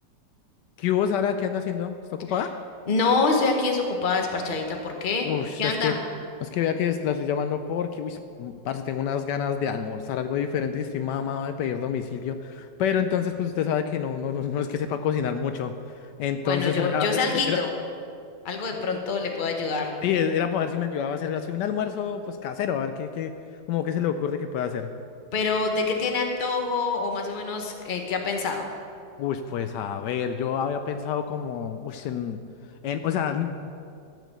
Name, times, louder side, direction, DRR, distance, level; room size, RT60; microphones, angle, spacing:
voice 1, 0.8-2.5 5.2-6.0 6.4-17.6 20.0-23.3 23.7-24.9 29.2-32.4 32.8-33.7, left 8 dB, 75° left, 8 dB, 1.2 m, -28 dB
voice 2, 2.9-5.3 5.6-6.0 16.4-17.7 18.4-19.9 25.3-28.6, left 4 dB, 35° left, 3 dB, 1.0 m, -26 dB
13.0 x 5.1 x 7.7 m, 2.4 s
omnidirectional pair, 1.9 m